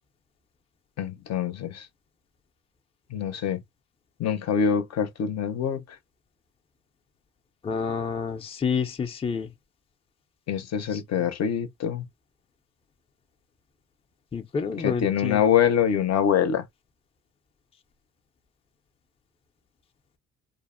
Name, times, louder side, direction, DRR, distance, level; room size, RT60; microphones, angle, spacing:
voice 1, 1.0-1.9 3.1-3.6 4.2-5.8 10.5-12.0 14.7-16.6, left 8 dB, 60° left, 0.6 m, -25 dB
voice 2, 7.6-9.5 10.9-11.3 14.3-15.4, left 5 dB, 20° left, 0.5 m, -29 dB
2.5 x 2.1 x 2.4 m
cardioid pair, 90°, 30 cm